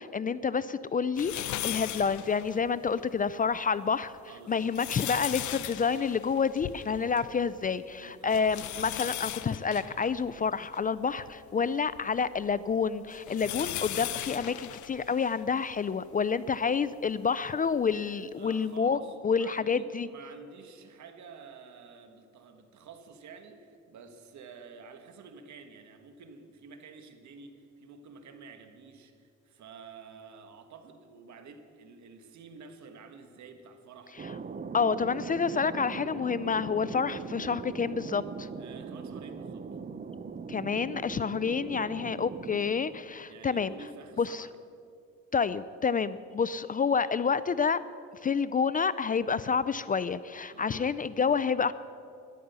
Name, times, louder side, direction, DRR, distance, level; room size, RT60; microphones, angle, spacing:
voice 1, 0.0-4.1 4.5-20.1 34.7-38.5 40.5-43.7 44.2-44.5 45.3-47.8 48.2-51.7, left 5 dB, 30° left, 16 dB, 0.4 m, -29 dB
sound 1, 1.2-3.0 3.5-3.6 4.4-7.4 7.6-7.7 8.3-11.3 11.9-15.8 16.5-16.6 17.9-18.0, left 14 dB, 75° left, 0.6 m, -38 dB
voice 2, 4.2-4.7 8.0-8.5 18.3-34.4 38.5-39.7 41.7-42.1 43.2-44.5 50.5-50.9, right 5 dB, 70° right, 7 dB, 1.6 m, -50 dB
Thunder, 34.2-43.5, right 5 dB, 30° right, 0.7 m, -40 dB
13.5 x 11.0 x 6.8 m, 2.6 s
cardioid pair, 90°, 30 cm